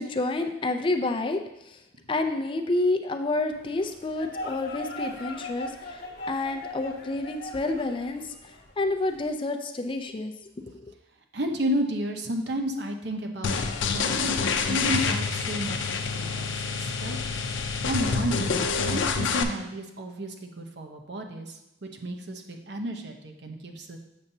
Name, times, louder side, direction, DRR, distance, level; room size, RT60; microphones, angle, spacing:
voice 1, 0.0-1.8 2.1-10.5 10.8-10.9, left 2 dB, 25° left, 6 dB, 0.4 m, -29 dB
sound 1, 3.5-9.3, left 1 dB, 55° left, 1.1 m, -40 dB
voice 2, 11.3-14.3 14.7-15.8 16.1-24.0, equal, 60° right, 3 dB, 0.8 m, -32 dB
sound 2, 13.4-19.4, left 5 dB, 90° left, 0.6 m, -27 dB
7.1 x 7.0 x 2.7 m, 0.88 s
head